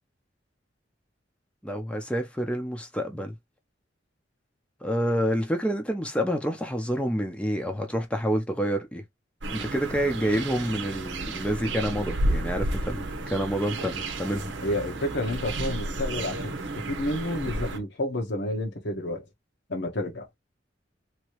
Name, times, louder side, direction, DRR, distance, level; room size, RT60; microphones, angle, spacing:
voice 1, 1.6-3.3 4.8-9.0 9.5-14.5, equal, 5° left, 0.7 m, -28 dB
sound 1, 9.4-17.8, right 2 dB, 80° right, 0.8 m, -32 dB
voice 2, 14.6-19.3 19.7-20.3, left 1 dB, 70° left, 1.1 m, -30 dB
3.1 x 2.8 x 3.0 m
head